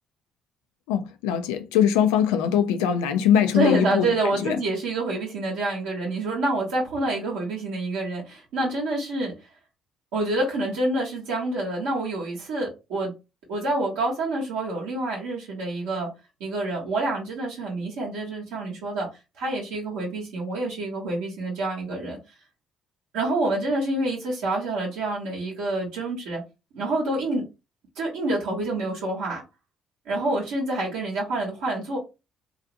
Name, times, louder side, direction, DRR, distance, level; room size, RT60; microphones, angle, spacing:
voice 1, 0.9-4.6, left 9 dB, 80° left, 0.4 m, -22 dB
voice 2, 3.5-9.3 10.1-13.1 13.5-16.1 16.4-19.1 19.4-22.2 23.1-26.4 26.7-27.4 28.0-29.4 30.0-32.0, right 2 dB, 80° right, 1.0 m, -27 dB
2.7 x 2.4 x 2.5 m
hypercardioid pair, 55°, 0 cm